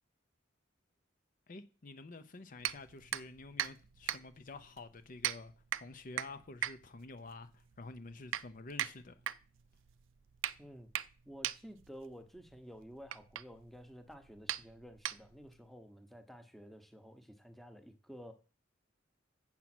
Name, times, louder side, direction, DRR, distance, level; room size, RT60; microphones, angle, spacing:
voice 1, 1.5-5.5 5.8-9.2, left 3 dB, 45° left, 0.7 m, -49 dB
sound 1, 2.6-15.6, right 11 dB, 90° right, 0.5 m, -41 dB
voice 2, 10.6-10.9 11.3-18.3, equal, ahead, 1.0 m, -52 dB
8.3 x 7.4 x 6.0 m
head